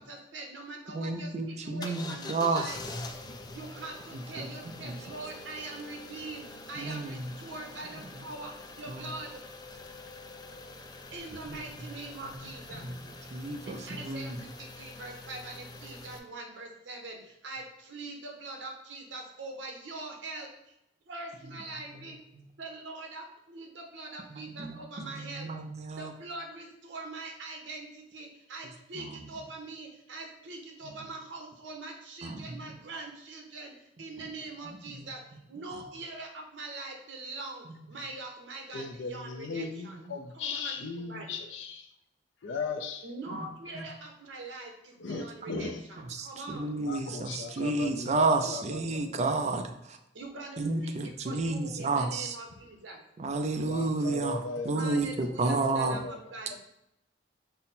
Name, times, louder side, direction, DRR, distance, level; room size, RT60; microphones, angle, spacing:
voice 1, 0.0-2.8 3.5-9.4 11.1-12.9 13.7-20.7 21.1-22.2 22.6-25.5 26.0-35.2 35.5-40.0 40.3-40.8 41.1-41.4 43.0-46.8 50.1-53.0 54.7-56.6, right 2 dB, 80° right, 2 dB, 0.9 m, -43 dB
voice 2, 0.9-2.6 4.8-4.9 6.8-7.3 8.9-9.0 13.3-14.4 24.3-26.1 29.0-29.1 32.2-32.5 43.3-43.5 43.8-43.9 45.5-45.7 46.2-50.0 50.6-52.4 53.2-54.4 54.7-56.0, right 3 dB, 40° right, 6 dB, 0.4 m, -31 dB
sound 1, 1.8-16.2, left 2 dB, 20° left, 0.4 m, -45 dB
voice 3, 38.7-41.9 42.4-43.1 45.0-45.8 46.8-49.2 53.6-55.0 55.6-56.6, left 4 dB, 80° left, 5 dB, 0.5 m, -38 dB
5.5 x 2.1 x 4.1 m, 0.81 s
head